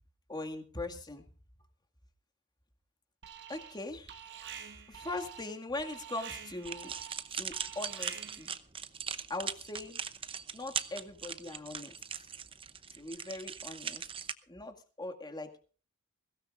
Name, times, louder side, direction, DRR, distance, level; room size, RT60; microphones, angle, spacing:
voice 1, 0.3-1.3 3.5-4.5 4.9-6.9 7.3-8.5 9.3-10.0 10.5-12.0 13.0-14.1 14.5-15.7, left 2 dB, 20° left, 4 dB, 2.0 m, -41 dB
Alarm, 3.2-8.5, right 8 dB, 55° right, 1.6 m, -47 dB
sound 1, 6.6-14.3, right 7 dB, 25° right, 0.7 m, -40 dB
21.5 x 16.5 x 2.5 m, 0.37 s
head